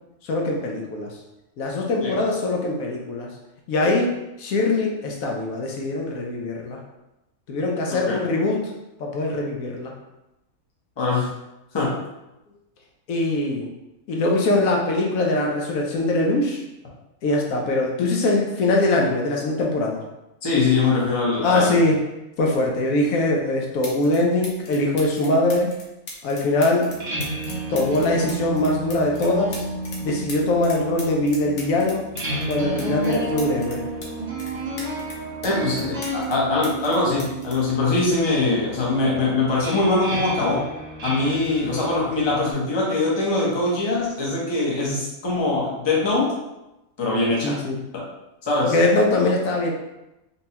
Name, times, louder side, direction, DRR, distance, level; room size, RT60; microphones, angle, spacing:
voice 1, 0.2-1.1 1.6-3.3 3.7-4.1 4.4-6.8 7.5-8.6 9.0-9.9 13.1-13.7 14.1-16.6 17.2-20.0 21.4-22.0 22.4-25.7 26.2-26.9 27.7-29.6 30.0-32.0 32.5-33.8 47.4-47.8 48.6-49.7, left 2 dB, 75° left, 0 dB, 1.0 m, -22 dB
voice 2, 11.0-11.3 11.7-12.0 20.4-21.8 35.4-40.6 41.0-46.3 47.0-47.6 47.9-48.0 48.4-48.8, left 3 dB, 25° left, -5 dB, 0.7 m, -22 dB
sound 1, 23.3-23.4 23.8-24.2 24.4-30.0 30.3-34.1 34.4-36.4 36.6-38.5 39.4-39.6, left 2 dB, 55° left, 0.8 m, -39 dB
sound 2, 26.8-42.5, right 2 dB, 60° right, 1.1 m, -32 dB
4.2 x 2.2 x 2.8 m, 0.95 s
omnidirectional pair, 1.5 m